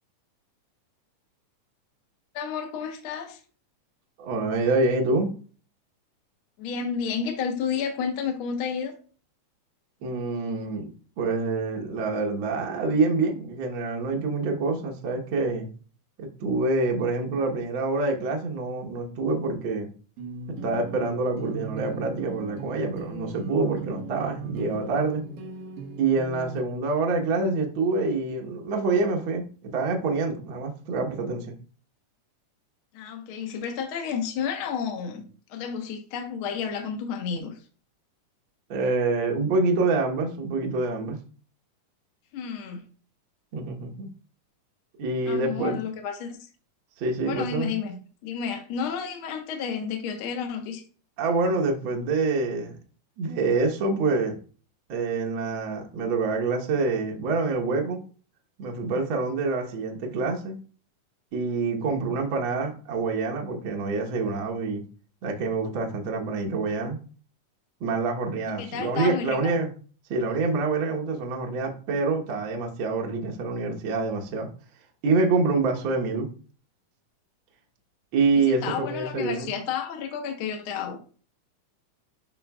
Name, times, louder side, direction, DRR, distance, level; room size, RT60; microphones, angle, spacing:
voice 1, 2.3-3.4 6.6-8.9 32.9-37.6 42.3-42.8 45.3-46.5 47.2-47.9 48.2-50.8 68.4-69.5 78.3-81.0, left 7 dB, 60° left, 1.5 m, -31 dB
voice 2, 4.2-5.3 10.0-10.9 11.2-15.7 16.2-19.9 20.6-25.2 26.0-31.5 38.7-41.2 43.5-44.1 45.0-45.8 47.0-47.7 51.2-52.8 53.2-54.4 54.9-58.0 58.6-60.6 61.3-64.8 65.2-67.0 67.8-69.7 70.1-74.5 75.0-76.3 78.1-79.5, right 3 dB, 60° right, 1.4 m, -26 dB
sound 1, 20.2-26.6, right 3 dB, 90° right, 2.7 m, -38 dB
11.5 x 3.8 x 2.3 m
omnidirectional pair, 3.6 m